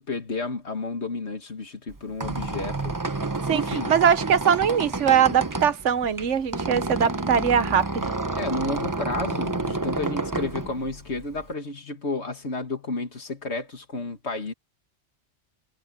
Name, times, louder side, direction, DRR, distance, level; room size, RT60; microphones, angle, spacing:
voice 1, 0.0-2.9 3.5-3.9 8.4-14.5, left 2 dB, 65° left, 2.3 m, -31 dB
Squeak, 1.9-11.5, right 3 dB, 20° right, 0.8 m, -30 dB
voice 2, 3.9-8.1, right 8 dB, 80° right, 1.2 m, -21 dB
omnidirectional pair, 1.2 m